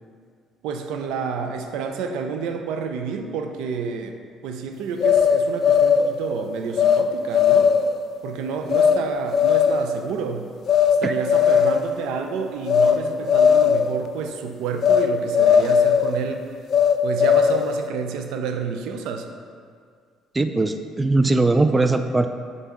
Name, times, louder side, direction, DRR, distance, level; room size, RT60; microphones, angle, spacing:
voice 1, 0.6-4.2 4.4-7.7 8.2-10.5 11.0-16.4 17.0-19.3, right 5 dB, 75° right, 5 dB, 0.5 m, -29 dB
sound 1, 5.0-6.1 6.8-7.0 7.3-7.9 8.7-9.0 9.3-9.9 10.7-11.0 11.3-11.9 12.7-13.0 13.3-13.9 14.8-15.1 15.3-16.1 16.7-17.7, left 7 dB, 55° left, 0.4 m, -17 dB
voice 2, 20.3-22.3, right 2 dB, 25° right, 8 dB, 0.4 m, -20 dB
5.6 x 4.0 x 6.1 m, 2.1 s
supercardioid pair, 65°, 0 cm